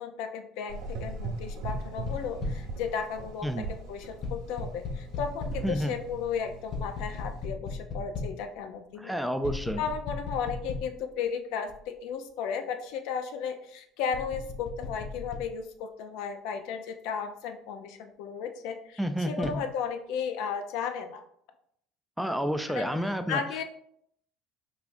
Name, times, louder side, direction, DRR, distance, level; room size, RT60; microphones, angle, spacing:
voice 1, 0.0-9.2 9.8-21.2 22.7-23.6, left 6 dB, 75° left, 7 dB, 0.4 m, -35 dB
Gurgling / Engine, 0.7-7.4, right 3 dB, 85° right, 1.1 m, -40 dB
sound 1, 1.7-2.8 4.2-5.9 6.7-8.4 9.4-11.1 11.7-11.8 14.1-15.5 19.4-19.6, left 4 dB, 50° left, 0.7 m, -37 dB
sound 2, 5.5-9.4, right 3 dB, 50° right, 0.6 m, -48 dB
voice 2, 5.6-5.9 9.0-9.8 19.0-19.7 22.2-23.4, equal, ahead, 8 dB, 0.3 m, -30 dB
4.9 x 2.3 x 2.5 m, 0.69 s
supercardioid pair, 90°, 0 cm